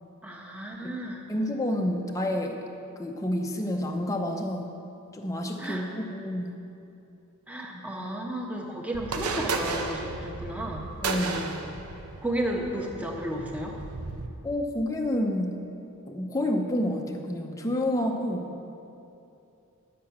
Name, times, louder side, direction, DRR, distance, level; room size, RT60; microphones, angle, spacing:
voice 1, 0.2-1.3 5.6-5.8 7.5-10.9 12.2-13.7, right 1 dB, 5° right, 0 dB, 1.1 m, -33 dB
voice 2, 1.3-2.6 3.0-4.7 5.1-6.6 7.7-7.9 11.0-11.6 14.4-15.6 16.1-18.6, left 1 dB, 15° left, 1 dB, 0.6 m, -29 dB
sound 1, 8.9-14.3, right 3 dB, 90° right, 0.8 m, -34 dB
10.5 x 7.4 x 5.8 m, 2.7 s
head